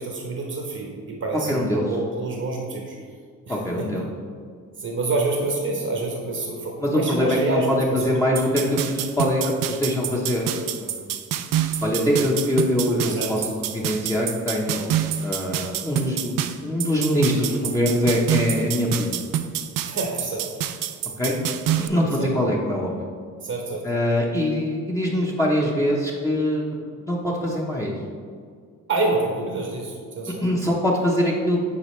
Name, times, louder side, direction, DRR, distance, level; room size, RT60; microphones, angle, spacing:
voice 1, 0.0-2.9 3.5-3.6 4.8-8.1 13.1-13.3 19.9-20.5 22.2-22.3 23.4-23.8 28.9-30.4, right 2 dB, 45° right, 0 dB, 1.0 m, -27 dB
voice 2, 1.3-1.9 3.5-4.1 6.8-10.9 11.8-13.5 13.7-16.3 16.6-19.3 21.2-21.4 21.8-23.1 23.8-27.9 30.4-31.6, equal, 10° left, -5 dB, 0.9 m, -23 dB
sound 1, 8.4-21.9, right 10 dB, 75° right, 0.5 m, -27 dB
8.5 x 4.8 x 3.2 m, 2.1 s
cardioid pair, 95°, 33 cm